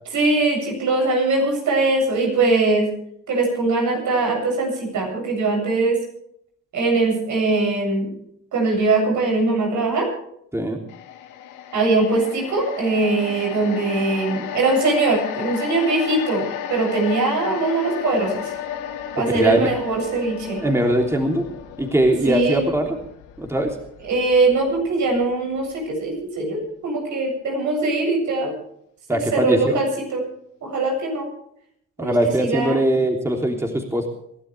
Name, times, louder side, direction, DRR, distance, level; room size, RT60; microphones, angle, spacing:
voice 1, 0.1-2.9 3.3-6.0 6.7-8.1 8.5-10.1 11.7-18.5 19.1-20.6 22.2-22.7 24.0-28.5 29.1-30.2 30.6-31.3 32.0-32.8, right 3 dB, 70° right, 2 dB, 8.0 m, -21 dB
sound 1, 10.9-25.2 25.6-25.7, left 10 dB, 85° left, 2.3 m, -33 dB
voice 2, 19.2-19.7 20.6-21.4 21.8-23.0 23.4-23.7 29.1-29.8 32.0-34.1, right 1 dB, 10° right, 2 dB, 3.2 m, -21 dB
27.0 x 12.5 x 3.5 m, 0.72 s
cardioid pair, 90°, 30 cm